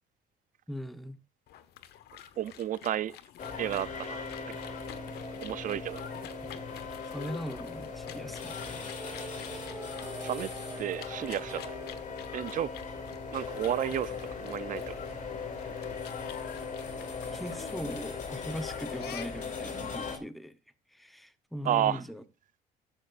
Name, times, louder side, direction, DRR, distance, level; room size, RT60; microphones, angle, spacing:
voice 1, 0.7-1.2 6.4-6.6 7.1-8.8 17.3-20.6 20.9-22.2, equal, ahead, 1.0 m, -40 dB
sound 1, 1.5-19.6, left 10 dB, 75° left, 1.2 m, -49 dB
voice 2, 2.4-3.2 3.6-4.3 5.4-6.0 10.2-10.5 10.8-11.7 12.3-12.7 13.3-15.0 21.6-22.0, right 11 dB, 50° right, 0.5 m, -32 dB
sound 2, 3.4-20.2, left 5 dB, 50° left, 3.0 m, -39 dB
sound 3, 8.2-12.2, right 3 dB, 15° right, 2.8 m, -45 dB
14.0 x 12.0 x 2.6 m
cardioid pair, 110°, 17 cm